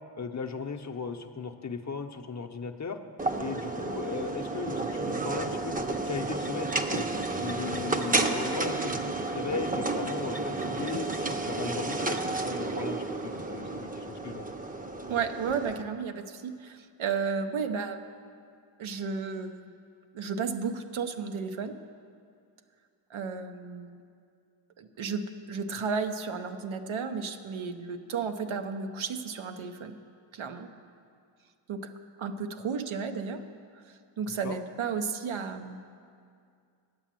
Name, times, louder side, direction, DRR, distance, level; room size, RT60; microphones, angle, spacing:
voice 1, 0.2-3.0 3.4-7.1 7.4-14.5 34.4-34.6, left 5 dB, 35° left, 5 dB, 0.6 m, -37 dB
sound 1, 3.2-15.8, right 2 dB, 20° right, 0.6 m, -31 dB
voice 2, 15.1-18.0 18.8-19.7 20.1-21.8 23.1-24.0 24.8-25.2 25.5-30.0 30.3-30.7 31.7-31.9 32.2-33.4 33.8-35.8, right 5 dB, 90° right, 7 dB, 0.7 m, -33 dB
9.6 x 8.2 x 7.4 m, 2.3 s
wide cardioid pair, 90°, 47 cm